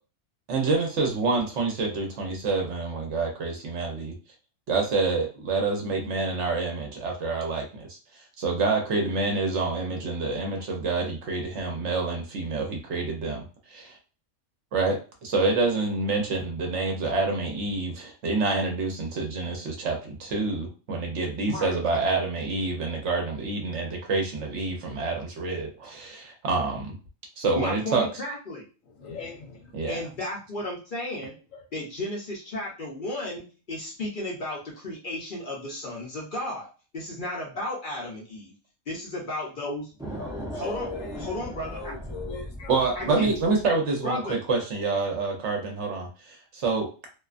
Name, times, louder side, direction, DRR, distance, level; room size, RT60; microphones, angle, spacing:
voice 1, 0.5-4.1 4.7-8.0 8.4-14.0 14.7-27.0 27.4-28.1 29.7-30.0 42.7-46.9, right 3 dB, 65° right, 0.9 m, -27 dB
voice 2, 21.5-21.8 27.6-28.6 29.9-31.4 31.7-36.7 36.9-38.5 38.9-39.9 40.5-40.9 41.2-41.9 43.0-43.3 44.0-44.4, left 1 dB, 50° left, 0.7 m, -33 dB
voice 3, 29.0-29.7 31.5-31.6 40.1-41.3 41.7-42.9, left 4 dB, 80° left, 1.0 m, -39 dB
sound 1, 40.0-43.7, equal, 5° right, 0.5 m, -38 dB
2.5 x 2.2 x 2.4 m
omnidirectional pair, 1.4 m